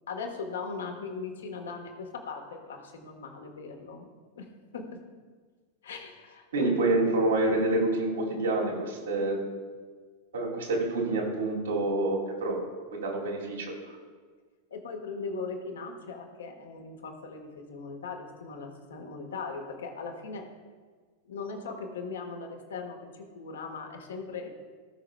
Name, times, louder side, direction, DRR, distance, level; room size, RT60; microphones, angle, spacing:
voice 1, 0.1-4.1 4.3-4.5 4.7-5.0 5.8-6.7 9.2-9.3 14.7-20.5 21.2-24.5, left 4 dB, 65° left, 3 dB, 1.5 m, -39 dB
voice 2, 6.5-9.4 10.3-12.6 12.9-13.7, right 2 dB, 65° right, -2 dB, 2.3 m, -27 dB
17.0 x 6.0 x 2.3 m, 1.5 s
figure-of-eight pair, 90°, 0 cm